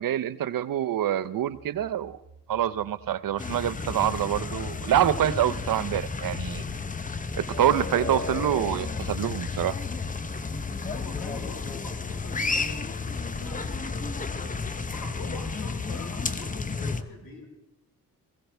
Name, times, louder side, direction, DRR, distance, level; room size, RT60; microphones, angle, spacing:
voice 1, 0.0-2.2 2.5-6.6 7.4-9.8, right 11 dB, 70° right, 15 dB, 0.7 m, -26 dB
sound 1, 1.5-14.5, right 4 dB, 50° right, 1.2 m, -53 dB
sound 2, 3.4-17.0, left 4 dB, 25° left, 0.7 m, -32 dB
voice 2, 10.7-17.5, left 3 dB, 80° left, -1 dB, 4.9 m, -44 dB
20.0 x 16.5 x 3.4 m, 0.84 s
wide cardioid pair, 110°, 35 cm